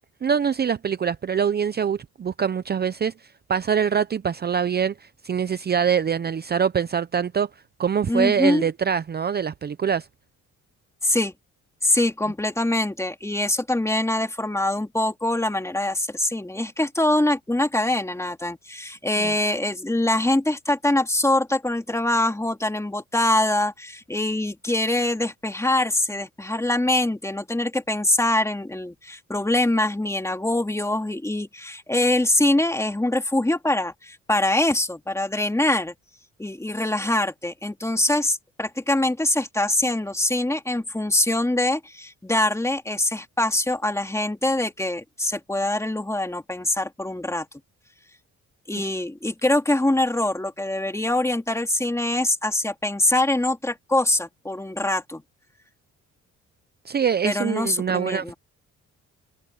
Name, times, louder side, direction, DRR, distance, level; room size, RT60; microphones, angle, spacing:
voice 1, 0.2-7.5 7.8-10.1 19.2-19.3 56.9-58.3, right 7 dB, 35° right, 0.7 m, -24 dB
voice 2, 8.1-8.6 11.0-11.3 11.8-35.9 36.4-47.5 48.7-55.2 57.2-58.3, left 1 dB, 10° left, 2.5 m, -24 dB
cardioid pair, 90°, 30 cm